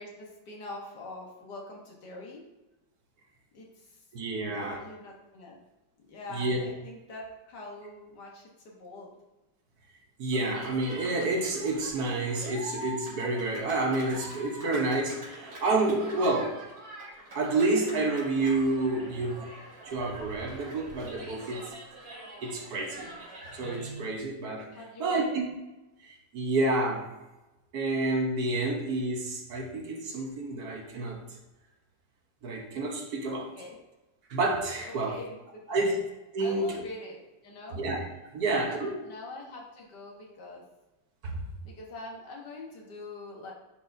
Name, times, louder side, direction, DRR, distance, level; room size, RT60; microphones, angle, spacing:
voice 1, 0.0-2.4 3.5-4.1 4.3-5.6 6.1-9.1 24.7-25.4 33.4-33.8 34.9-36.0 36.4-37.8 38.4-40.6 41.6-43.5, left 2 dB, 75° left, -1 dB, 1.9 m, -44 dB
voice 2, 4.1-4.8 6.3-6.6 10.2-16.5 17.3-19.5 19.8-21.6 22.4-23.1 23.5-24.7 25.0-25.5 26.0-27.1 27.7-31.2 32.4-33.5 34.3-35.2 35.7-36.0 36.3-36.7 37.7-38.0 38.3-38.9 41.2-41.4, right 2 dB, 65° right, 1 dB, 1.5 m, -29 dB
Cheering, 10.3-24.0, right 1 dB, 85° right, 3.1 m, -45 dB
10.0 x 4.4 x 2.6 m, 1.1 s
omnidirectional pair, 1.8 m